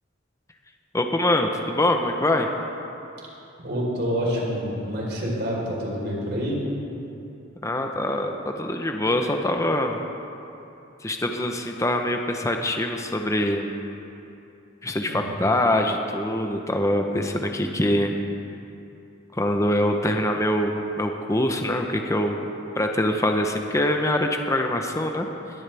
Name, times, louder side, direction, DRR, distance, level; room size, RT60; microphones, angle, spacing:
voice 1, 0.9-2.5 7.6-10.0 11.0-13.7 14.8-18.1 19.4-22.4 22.8-25.3, left 1 dB, 15° left, 4 dB, 0.8 m, -24 dB
voice 2, 3.6-6.6 15.1-15.3, equal, 60° right, -3 dB, 4.0 m, -27 dB
21.0 x 14.5 x 3.4 m, 2.9 s
head